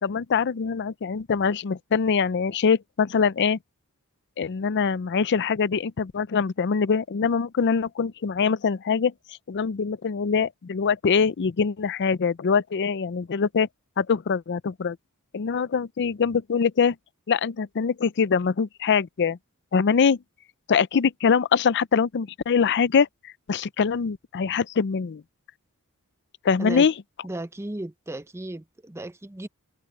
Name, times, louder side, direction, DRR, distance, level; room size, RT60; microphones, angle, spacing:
voice 1, 0.0-3.6 4.4-13.7 14.0-15.0 15.3-17.0 17.3-19.4 19.7-20.2 20.7-25.2 26.4-26.9, left 6 dB, 50° left, 0.5 m, -23 dB
voice 2, 27.2-29.5, right 1 dB, 10° right, 0.6 m, -35 dB
head